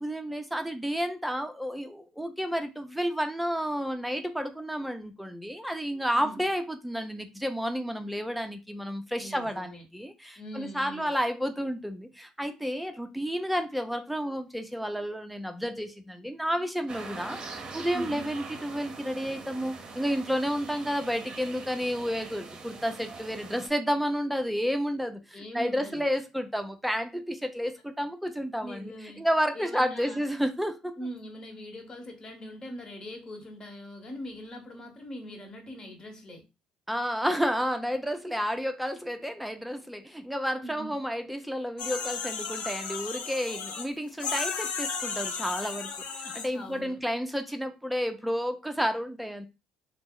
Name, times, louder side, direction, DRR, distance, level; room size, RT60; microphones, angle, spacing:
voice 1, 0.0-31.0 36.9-49.5, equal, ahead, 0.5 m, -31 dB
voice 2, 6.1-6.5 9.2-9.8 10.4-11.2 17.9-18.3 25.3-26.1 28.6-29.2 29.5-30.2 31.0-36.4 40.6-41.0 46.5-47.0, equal, 35° left, 1.1 m, -42 dB
sound 1, 16.9-23.7, right 4 dB, 40° right, 0.7 m, -43 dB
sound 2, 41.8-43.9 44.2-46.5, left 5 dB, 65° left, 0.6 m, -34 dB
2.8 x 2.0 x 3.7 m
supercardioid pair, 80°, 2 cm